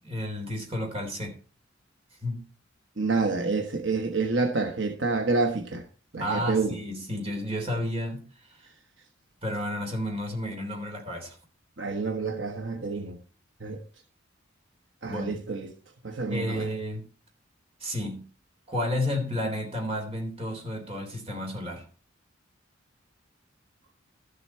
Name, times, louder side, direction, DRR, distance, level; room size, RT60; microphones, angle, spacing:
voice 1, 0.0-1.3 2.2-2.4 6.2-8.2 9.4-11.4 15.0-15.4 16.3-17.0 17.8-18.2 18.7-21.8, left 1 dB, 30° right, 3.5 m, -31 dB
voice 2, 3.0-5.8 6.1-6.8 11.8-13.2 13.6-13.8 15.0-15.7 16.0-16.7, right 3 dB, 65° right, 1.1 m, -28 dB
13.0 x 7.8 x 4.3 m
head